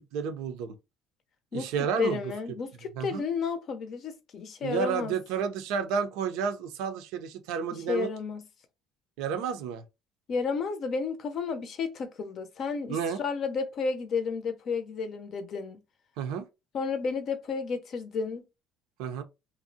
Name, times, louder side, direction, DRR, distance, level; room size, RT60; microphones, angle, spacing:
voice 1, 0.1-0.7 1.5-2.2 3.0-3.2 4.6-8.1 9.2-9.8 12.9-13.2 16.2-16.4 19.0-19.2, right 7 dB, 85° right, 0.5 m, -31 dB
voice 2, 2.0-5.1 7.9-8.4 10.3-15.8 16.7-18.4, left 5 dB, 55° left, 0.5 m, -32 dB
2.6 x 2.0 x 2.6 m
cardioid pair, 100°, 0 cm